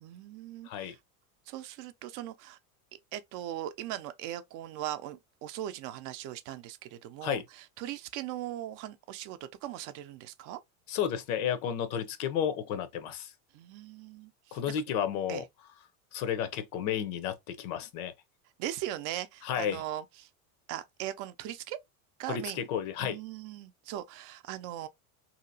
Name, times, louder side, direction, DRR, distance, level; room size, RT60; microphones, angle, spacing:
voice 1, 0.0-1.0 1.5-2.6 3.1-10.6 13.5-14.6 15.3-15.4 18.6-20.3 20.7-21.8 22.2-22.7 23.0-24.9, right 13 dB, 50° right, 0.4 m, -39 dB
voice 2, 10.9-13.3 14.5-15.4 16.1-18.1 19.4-19.8 22.3-23.2, left 9 dB, 80° left, 0.7 m, -32 dB
2.8 x 2.8 x 2.6 m
supercardioid pair, 130°, 42 cm